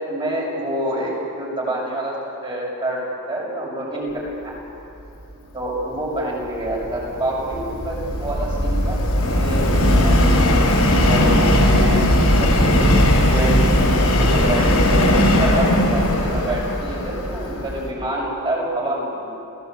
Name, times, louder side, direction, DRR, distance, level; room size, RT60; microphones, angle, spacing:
voice 1, 0.0-2.2 2.4-3.0 3.3-4.5 5.5-9.0 9.2-10.6 11.0-12.1 12.4-12.8 13.2-19.4, right 1 dB, 25° right, -2 dB, 6.9 m, -27 dB
Subway metro underground, 6.6-17.9, left 1 dB, 80° left, 5.7 m, -18 dB
29.0 x 17.5 x 8.2 m, 2.9 s
head